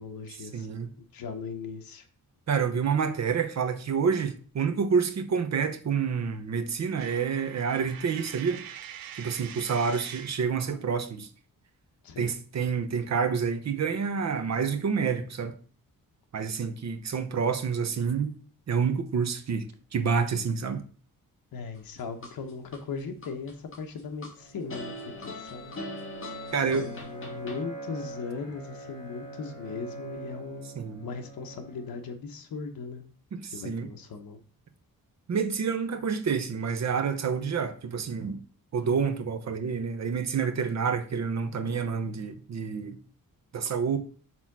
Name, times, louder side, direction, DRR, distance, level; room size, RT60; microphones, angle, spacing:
voice 1, 0.0-2.1 12.0-12.3 21.5-25.8 26.7-30.7 31.0-33.0 33.5-34.4, left 5 dB, 75° left, 1.1 m, -38 dB
voice 2, 0.5-0.9 2.5-8.6 9.2-11.3 12.2-15.6 16.3-18.3 18.7-19.6 19.9-20.8 26.5-26.9 30.7-31.0 33.3-33.9 35.3-38.4 38.7-43.0 43.5-44.0, right 6 dB, 50° right, 0.9 m, -28 dB
Coin (dropping), 7.0-10.5, right 9 dB, 75° right, 0.7 m, -44 dB
sound 1, 21.8-22.8 23.2-24.3 24.7-27.6, left 2 dB, 35° left, 1.9 m, -40 dB
Bowed string instrument, 24.3-32.1, right 2 dB, 55° left, 2.6 m, -44 dB
6.0 x 3.8 x 6.0 m
wide cardioid pair, 145°, 35 cm